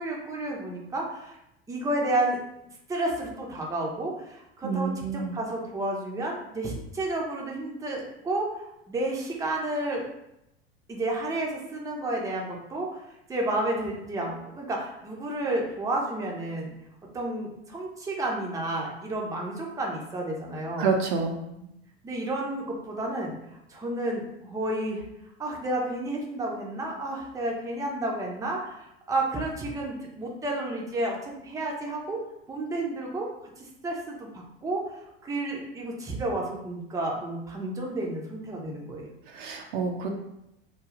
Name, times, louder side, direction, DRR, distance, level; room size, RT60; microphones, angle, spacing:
voice 1, 0.0-1.4 1.7-2.4 2.9-10.0 10.9-13.0 13.3-16.7 17.1-20.9 21.5-21.7 22.0-23.3 23.7-25.0 25.4-32.2 32.5-33.3 33.6-34.8 35.2-39.1, right 1 dB, 10° right, -1 dB, 0.7 m, -31 dB
voice 2, 4.6-5.3 20.8-21.3 39.3-40.1, right 5 dB, 55° right, 2 dB, 0.6 m, -28 dB
3.2 x 2.3 x 3.7 m, 0.84 s
figure-of-eight pair, 80°, 31 cm